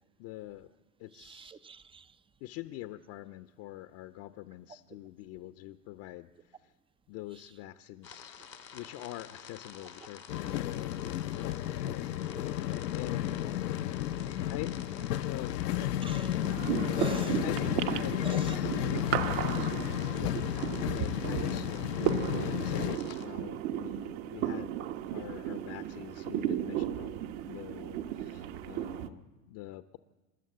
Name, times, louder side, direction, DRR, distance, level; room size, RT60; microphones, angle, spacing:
voice 1, 0.2-0.7 1.0-1.6 2.4-6.7 7.1-8.3 8.7-12.6 12.9-13.4 14.5-14.8 15.2-15.8 17.3-20.3 20.8-24.8 25.1-27.1 27.5-30.0, left 15 dB, 45° left, 10 dB, 0.9 m, -45 dB
voice 2, 1.2-2.2 16.0-16.6 16.9-17.4 18.2-18.6, right 4 dB, 10° right, 15 dB, 0.6 m, -43 dB
sound 1, 8.0-23.3, left 7 dB, 85° left, 2.6 m, -50 dB
sound 2, 10.3-23.0, left 12 dB, 70° left, 0.9 m, -32 dB
sound 3, 16.4-29.1, right 11 dB, 50° right, 1.4 m, -35 dB
27.5 x 12.5 x 8.0 m, 1.2 s
hypercardioid pair, 90°, 48 cm